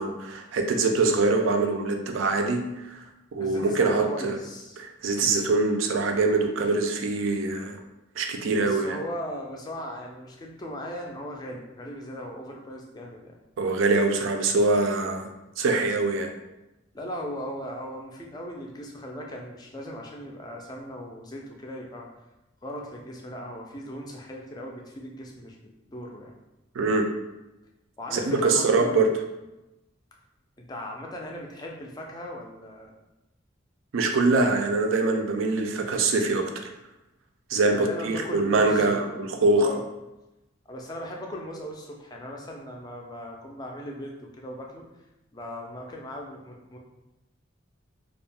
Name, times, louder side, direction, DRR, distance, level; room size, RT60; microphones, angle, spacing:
voice 1, 0.0-3.0 3.3-4.4 4.8-7.8 8.2-9.0 13.6-15.3 15.6-16.3 26.8-27.1 28.1-29.1 33.9-36.7 37.5-39.7, right 3 dB, 75° right, 4 dB, 0.4 m, -24 dB
voice 2, 3.4-4.8 8.6-13.4 16.9-22.1 22.6-25.6 25.9-26.3 28.0-29.1 30.6-32.9 37.7-39.2 39.6-39.8 40.7-44.8 45.3-46.8, equal, 20° left, 0 dB, 0.3 m, -38 dB
2.3 x 2.1 x 3.3 m, 0.97 s
head